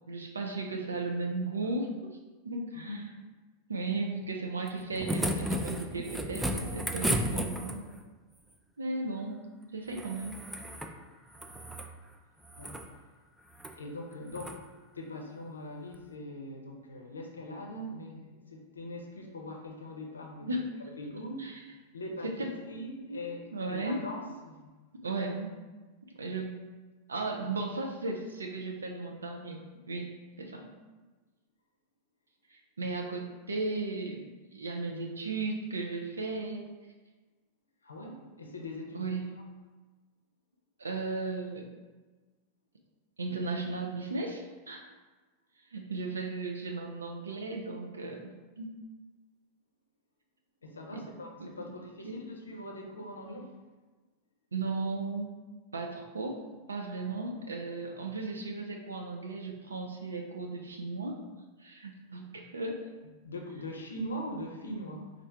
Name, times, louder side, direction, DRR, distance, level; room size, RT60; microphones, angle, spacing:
voice 1, 0.1-2.2 2.4-3.0 3.7-7.8 8.8-9.4 9.7-10.4 20.4-20.6 21.4-21.6 22.2-22.5 23.1-23.2 23.5-24.0 25.0-25.5 26.1-26.5 27.1-29.6 29.9-30.1 30.4-30.7 32.5-36.7 38.9-39.3 40.8-41.6 43.2-44.8 45.7-48.3 48.6-48.7 50.9-51.1 51.4-51.5 52.0-52.2 54.5-55.3 55.7-56.4 56.7-61.2 61.6-62.9, right 3 dB, 75° right, 1 dB, 0.4 m, -35 dB
voice 2, 2.7-3.1 12.6-12.8 13.8-14.6 14.9-20.6 21.0-24.8 37.8-39.2 50.6-53.6 63.2-65.1, left 1 dB, 75° left, 2 dB, 0.5 m, -42 dB
sound 1, 4.7-8.0 9.9-10.9 11.3-11.9 12.4-12.9 13.5-13.8 14.3-14.6 15.9-16.0, right 1 dB, 5° right, 0.3 m, -34 dB
4.3 x 2.4 x 3.4 m, 1.3 s
figure-of-eight pair, 90°, 0 cm